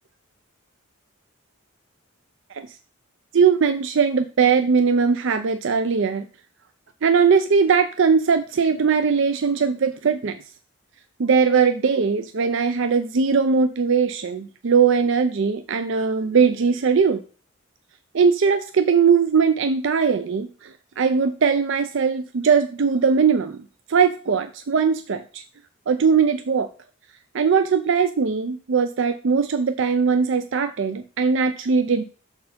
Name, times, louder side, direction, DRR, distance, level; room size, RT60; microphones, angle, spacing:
voice 1, 3.3-6.3 7.0-10.4 11.2-17.2 18.1-23.6 23.9-25.4 25.9-26.7 27.3-32.0, right 5 dB, 60° right, 10 dB, 0.4 m, -20 dB
6.8 x 4.5 x 5.1 m, 0.37 s
head